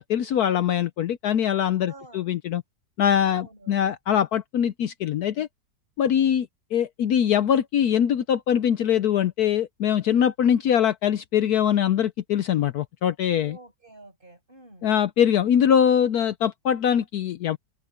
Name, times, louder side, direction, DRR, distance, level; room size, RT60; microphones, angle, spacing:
voice 1, 0.0-2.6 3.0-5.5 6.0-13.6 14.8-17.6, left 9 dB, 70° left, 1.1 m, -22 dB
voice 2, 1.9-2.3 3.2-3.9 6.1-6.4 13.4-14.9, right 2 dB, 30° right, 7.9 m, -49 dB
open air
omnidirectional pair, 1.9 m